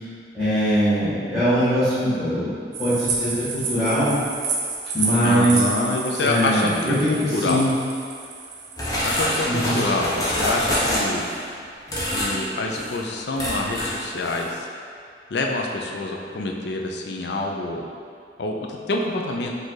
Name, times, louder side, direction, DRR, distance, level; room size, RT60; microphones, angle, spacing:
voice 1, 0.3-2.5 2.8-4.2 4.9-5.6 6.2-7.7 9.4-9.8, equal, 5° left, -18 dB, 1.1 m, -21 dB
sound 1, 2.7-9.4, right 4 dB, 85° right, 0.6 m, -30 dB
voice 2, 5.2-6.8 7.1-7.6 9.0-11.3 12.1-14.7 15.3-17.8 18.4-19.5, left 2 dB, 75° left, 1 dB, 0.5 m, -26 dB
sound 2, 8.8-11.4 11.9-12.4 12.7-13.0 13.4-14.0 14.3-14.5, equal, 20° left, 0.8 m, -25 dB
5.1 x 2.5 x 3.9 m, 2.3 s
head